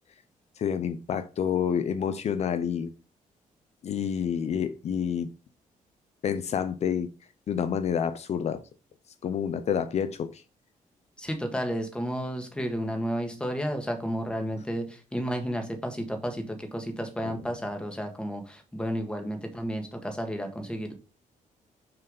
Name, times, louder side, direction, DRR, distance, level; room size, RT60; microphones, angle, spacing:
voice 1, 0.6-2.9 3.8-5.3 6.2-7.1 7.5-8.6 9.2-10.4 17.2-17.3, left 8 dB, 50° left, 0.6 m, -28 dB
voice 2, 11.2-20.9, equal, 5° left, 1.6 m, -32 dB
6.5 x 4.6 x 5.3 m
cardioid pair, 135°, 14 cm